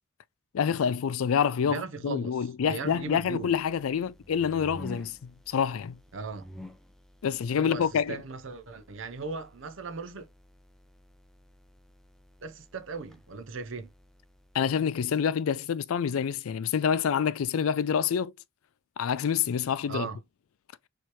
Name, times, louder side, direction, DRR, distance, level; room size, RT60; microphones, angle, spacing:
voice 1, 0.5-6.0 7.2-8.2 14.5-18.3 19.0-20.1, left 7 dB, 90° left, 0.4 m, -27 dB
voice 2, 1.7-3.5 6.1-6.5 7.5-10.3 12.4-13.9 19.9-20.2, right 4 dB, 70° right, 0.7 m, -38 dB
sound 1, 2.8-15.1, left 1 dB, ahead, 0.5 m, -51 dB
4.5 x 3.3 x 3.0 m
head